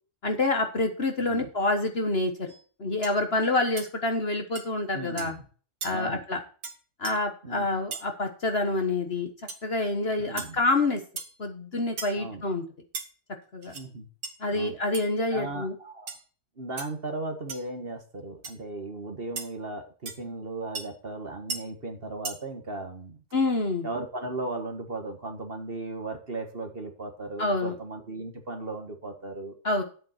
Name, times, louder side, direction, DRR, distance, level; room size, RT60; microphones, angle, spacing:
voice 1, 0.2-2.5 2.8-5.3 5.8-6.4 7.0-9.3 9.6-11.0 11.4-12.6 13.5-13.7 14.4-15.7 23.3-23.9 27.4-27.7 29.6-29.8, left 2 dB, 40° left, 6 dB, 1.5 m, -27 dB
sound 1, 2.5-2.6 3.0-3.2 3.8-3.9 4.5-4.7 5.2-5.3 5.8-5.9 6.6-6.8 7.0-7.1 7.9-8.1 9.5-9.6 10.4-10.5 11.2-11.4 12.0-12.2 12.9-13.1 13.6-13.8 14.2-14.3 14.9-15.0 16.1-16.2 16.8-16.9 17.5-17.7 18.4-18.5 19.4-19.5 20.1-20.2 20.7-20.8 21.5-21.6 22.2-22.4, right 5 dB, 65° right, 2.1 m, -36 dB
voice 2, 4.9-5.4 5.9-6.2 7.4-7.7 10.2-10.6 12.2-12.4 13.7-14.1 14.5-14.8 15.3-16.2 16.6-23.2 23.8-29.6, right 2 dB, 40° right, 5 dB, 1.7 m, -36 dB
10.5 x 8.1 x 4.4 m, 0.39 s
omnidirectional pair, 1.7 m